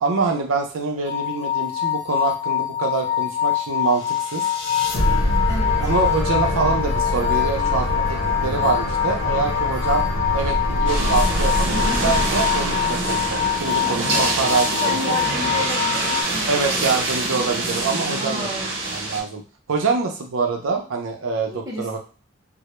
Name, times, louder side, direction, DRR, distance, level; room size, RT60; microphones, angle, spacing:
voice 1, 0.0-4.4 5.8-10.0 10.3-15.0 15.5-15.6 16.5-19.4 19.7-22.0, right 4 dB, 90° right, 2 dB, 0.5 m, -25 dB
sound 1, 1.0-16.2, left 11 dB, 25° left, 0.7 m, -25 dB
sound 2, 4.0-14.2, left 1 dB, 65° left, 0.7 m, -25 dB
voice 2, 5.5-5.9 14.8-17.4 18.2-18.8 21.4-22.0, right 1 dB, 15° right, -3 dB, 0.6 m, -32 dB
sound 3, 10.9-19.2, right 2 dB, 65° right, 0.8 m, -25 dB
2.1 x 2.0 x 2.9 m, 0.39 s
head